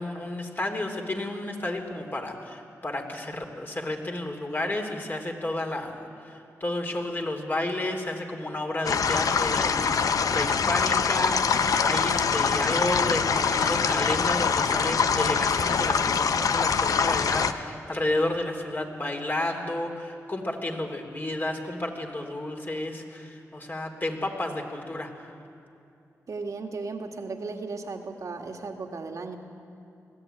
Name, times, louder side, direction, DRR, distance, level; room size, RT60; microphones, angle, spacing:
voice 1, 0.0-25.3, left 1 dB, 35° left, 3 dB, 3.3 m, -31 dB
sound 1, 8.8-17.5, left 6 dB, 70° left, 0.8 m, -24 dB
voice 2, 26.3-29.4, right 4 dB, 60° right, 4 dB, 2.0 m, -35 dB
20.5 x 14.0 x 9.2 m, 2.6 s
cardioid pair, 50°, 6 cm